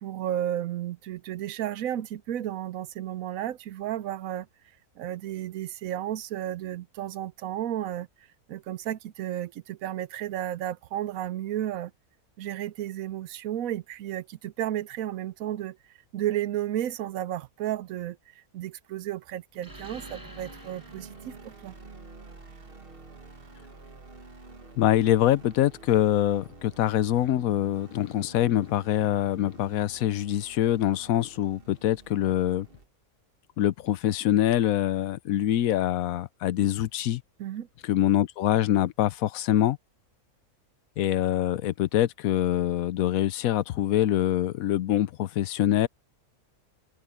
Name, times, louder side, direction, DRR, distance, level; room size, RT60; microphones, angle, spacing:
voice 1, 0.0-4.5 5.0-8.1 8.5-11.9 12.4-15.8 16.1-18.2 18.5-21.7 37.4-37.7, right 12 dB, 70° right, 1.0 m, -33 dB
sound 1, 19.5-24.7, equal, 10° right, 5.8 m, -52 dB
sound 2, 19.7-32.9, right 3 dB, 40° right, 1.9 m, -49 dB
voice 2, 24.8-32.7 33.6-37.2 37.8-39.8 41.0-45.9, left 12 dB, 70° left, 1.0 m, -24 dB
omnidirectional pair, 1.6 m